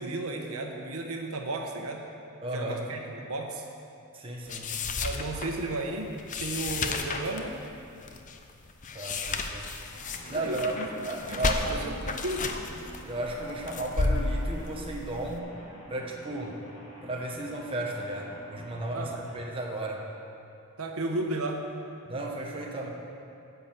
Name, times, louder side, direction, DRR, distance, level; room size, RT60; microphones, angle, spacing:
voice 1, 0.0-2.0 2.5-3.7 5.0-6.1 6.4-7.6 10.3-10.9 11.3-12.6 18.9-19.1 20.8-21.6, right 2 dB, 75° right, 2 dB, 1.1 m, -34 dB
voice 2, 2.4-2.8 4.1-4.7 8.9-9.7 10.3-12.0 13.0-15.5 15.9-16.6 17.0-20.1 22.0-22.9, right 1 dB, 25° right, -1 dB, 1.1 m, -34 dB
sound 1, 4.5-15.4, left 3 dB, 35° left, 0.6 m, -33 dB
sound 2, 9.9-19.4, equal, 70° left, 2.1 m, -49 dB
10.0 x 6.9 x 7.4 m, 2.6 s
head